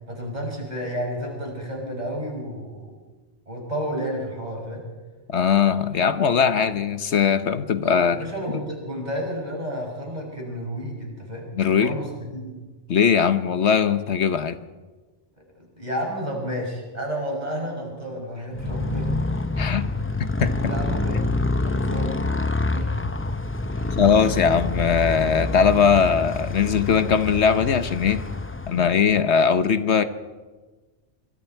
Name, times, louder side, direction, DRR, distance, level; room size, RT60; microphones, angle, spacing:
voice 1, 0.1-2.9 3.5-4.8 8.1-12.5 15.8-19.4 20.6-21.3 21.6-22.2 22.7-22.9 23.7-23.9, equal, 35° right, -1 dB, 6.4 m, -31 dB
voice 2, 5.3-8.2 11.5-11.9 12.9-14.6 19.6-19.9 20.4-20.7 24.0-28.3 28.7-30.0, left 6 dB, 75° left, 11 dB, 1.2 m, -20 dB
Motorcycle, 18.5-29.2, left 2 dB, 15° left, 0.5 m, -27 dB
26.0 x 25.5 x 4.5 m, 1.3 s
omnidirectional pair, 1.2 m